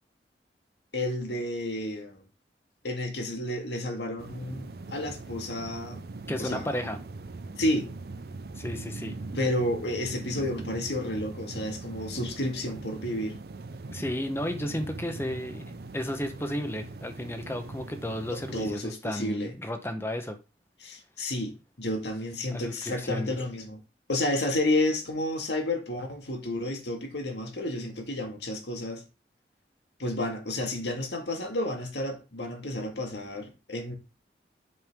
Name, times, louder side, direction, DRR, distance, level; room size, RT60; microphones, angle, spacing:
voice 1, 0.9-2.2 2.8-6.0 6.4-6.7 7.6-7.9 9.3-13.4 18.3-19.5 20.8-23.8 24.1-29.0 30.0-34.0, left 1 dB, 85° left, 2.0 m, -31 dB
sound 1, 4.2-18.8, right 3 dB, 60° right, 0.5 m, -41 dB
voice 2, 6.3-7.0 8.6-9.2 13.9-20.4 22.5-23.4, left 1 dB, 15° left, 0.9 m, -33 dB
7.7 x 5.5 x 3.6 m
head